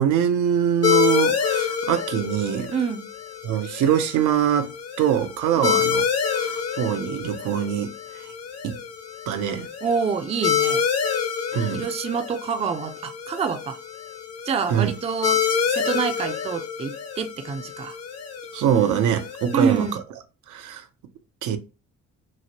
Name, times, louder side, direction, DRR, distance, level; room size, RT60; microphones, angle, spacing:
voice 1, 0.0-2.7 3.4-4.7 5.0-6.0 6.3-8.3 8.6-8.8 9.3-9.7 11.5-11.9 14.7-14.9 18.5-19.9 20.5-20.9 21.4-21.6, right 9 dB, 85° right, 0.5 m, -23 dB
sound 1, 0.8-20.0, left 7 dB, 55° left, 0.7 m, -27 dB
voice 2, 2.7-3.1 5.6-5.8 9.8-10.8 11.7-13.8 14.4-18.0 19.5-20.0, right 6 dB, 20° right, 0.3 m, -27 dB
3.0 x 2.5 x 2.8 m
cardioid pair, 90°, 30 cm